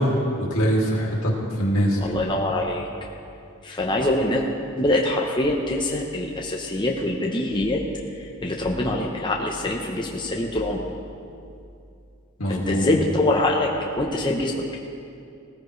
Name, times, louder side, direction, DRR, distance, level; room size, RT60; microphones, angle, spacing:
voice 1, 0.0-2.0 12.4-12.8, equal, 70° left, -2 dB, 2.3 m, -23 dB
voice 2, 2.0-2.9 3.6-4.4 4.8-7.8 8.1-10.9 12.5-14.8, left 1 dB, 20° left, -1 dB, 0.8 m, -24 dB
18.0 x 14.0 x 3.2 m, 2.5 s
head